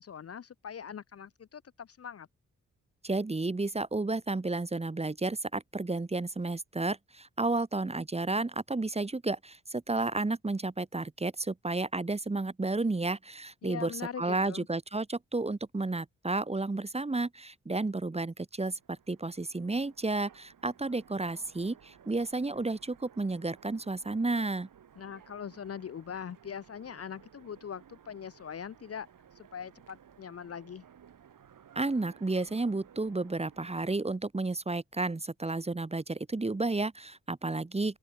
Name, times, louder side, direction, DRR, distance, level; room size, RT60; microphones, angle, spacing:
voice 1, 0.0-2.3 13.6-14.7 25.0-29.1 29.4-30.8, left 7 dB, 45° left, 0.7 m, -42 dB
voice 2, 3.0-24.7 31.7-38.0, right 2 dB, 20° right, 1.0 m, -32 dB
Train, 18.6-33.9, right 8 dB, 65° right, 2.4 m, -58 dB
open air
supercardioid pair, 40°, 34 cm